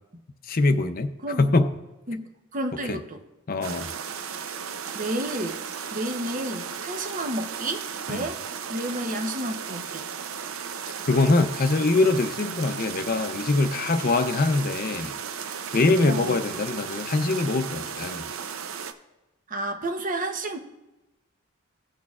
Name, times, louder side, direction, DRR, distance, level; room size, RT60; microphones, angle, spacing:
voice 1, 0.5-1.1 1.4-1.7 2.9-3.0 3.5-3.9 8.1-8.3 11.0-15.1 15.7-18.3, left 3 dB, 45° left, 0.6 m, -23 dB
voice 2, 2.5-3.2 4.9-5.6 5.9-8.4 8.7-10.1 16.1-16.4 19.5-20.6, right 1 dB, 40° right, 0.9 m, -31 dB
sound 1, 3.6-18.9, right 7 dB, 85° right, 0.6 m, -35 dB
17.0 x 6.5 x 2.4 m
head